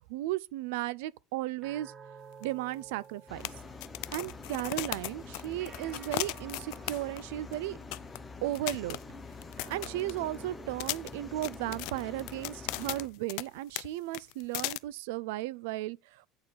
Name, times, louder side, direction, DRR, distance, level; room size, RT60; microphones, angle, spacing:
voice 1, 0.1-1.9 2.4-3.4 4.1-7.8 8.4-9.0 9.7-16.3, right 15 dB, 85° right, 0.4 m, -35 dB
sound 1, 1.6-4.2 5.6-8.1 9.6-12.2, right 6 dB, 25° right, 1.0 m, -53 dB
sound 2, 2.4-2.5 2.7-2.8 3.4-7.3 7.5-7.6 7.9-8.2 8.5-10.4 10.8-13.5 13.8-13.9 14.1-14.8, left 23 dB, 65° left, 0.3 m, -37 dB
sound 3, 3.3-13.1, left 4 dB, 10° left, 0.9 m, -46 dB
8.6 x 4.1 x 4.6 m
cardioid pair, 160°, 0 cm